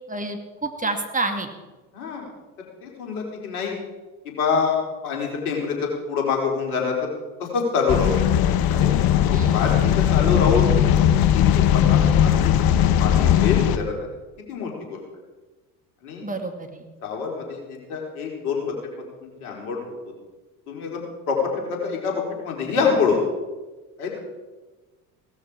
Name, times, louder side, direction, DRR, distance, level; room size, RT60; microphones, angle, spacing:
voice 1, 0.1-1.5 9.3-9.7 16.2-16.9, right 3 dB, 15° right, 5 dB, 2.5 m, -29 dB
voice 2, 1.9-2.3 2.8-3.8 4.2-4.8 5.0-7.1 7.4-8.2 8.7-9.0 9.5-10.7 11.3-13.9 14.5-15.0 16.0-16.3 17.0-19.9 20.7-23.2 24.0-24.2, left 5 dB, 70° left, 0 dB, 4.3 m, -26 dB
sound 1, 7.9-13.8, left 10 dB, 50° left, 1.1 m, -18 dB
16.5 x 13.0 x 5.0 m, 1.2 s
hypercardioid pair, 65°, 45 cm